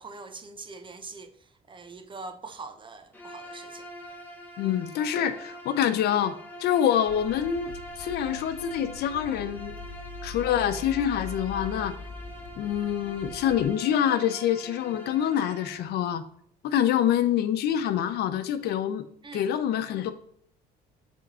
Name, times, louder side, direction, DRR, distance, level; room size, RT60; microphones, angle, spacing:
voice 1, 0.0-3.9 19.2-19.5, right 3 dB, 30° right, 0.8 m, -43 dB
Bowed string instrument, 3.1-15.9, equal, 10° left, 1.5 m, -44 dB
voice 2, 4.6-6.3 6.6-9.8 10.2-11.9 12.6-16.2 16.6-19.1 19.3-20.1, left 10 dB, 75° left, 0.8 m, -26 dB
sound 1, 7.1-13.7, left 3 dB, 50° left, 1.8 m, -42 dB
7.6 x 3.6 x 4.1 m
cardioid pair, 110°, 17 cm